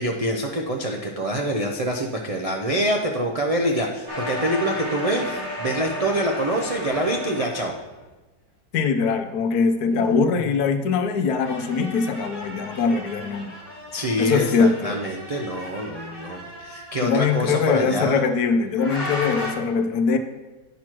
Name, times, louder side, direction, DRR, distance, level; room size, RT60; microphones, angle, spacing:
voice 1, 0.0-7.7 13.9-18.2, right 1 dB, 55° right, 1 dB, 0.3 m, -25 dB
sound 1, 4.1-7.9 9.9-10.5 11.4-17.9 18.8-19.5, left 1 dB, 15° right, 2.4 m, -34 dB
voice 2, 8.7-13.5 14.2-15.0 17.0-20.2, left 5 dB, 75° left, 8 dB, 1.1 m, -22 dB
9.5 x 5.9 x 4.5 m, 1.2 s
omnidirectional pair, 1.7 m